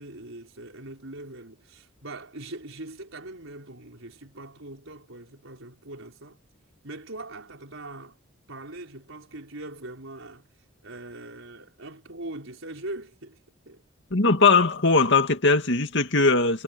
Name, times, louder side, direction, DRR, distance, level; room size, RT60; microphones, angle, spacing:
voice 1, 0.0-6.4 6.8-8.2 8.5-10.5 10.8-13.4 13.6-13.8, right 2 dB, 70° right, 5.4 m, -41 dB
voice 2, 14.1-16.6, left 3 dB, 60° left, 2.3 m, -20 dB
head